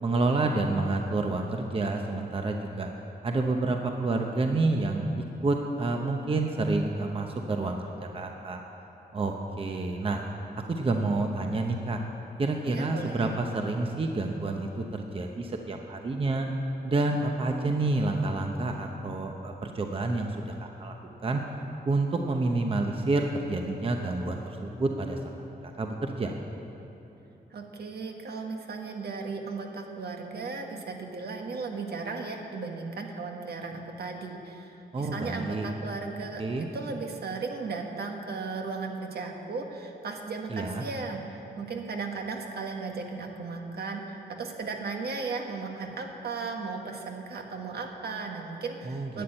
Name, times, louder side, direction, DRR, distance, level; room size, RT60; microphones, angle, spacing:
voice 1, 0.0-2.9 3.2-7.8 8.1-8.6 9.1-10.2 10.7-12.0 12.4-14.8 15.1-16.5 16.8-20.5 20.8-20.9 21.2-21.4 21.9-25.2 25.6-26.3 34.9-35.7 36.4-36.7 40.5-40.8 48.9-49.2, right 2 dB, 30° right, 3 dB, 0.8 m, -28 dB
voice 2, 12.7-13.3 27.5-49.2, right 4 dB, 70° right, 2 dB, 1.5 m, -36 dB
12.0 x 8.7 x 8.8 m, 3.0 s
wide cardioid pair, 135°, 17 cm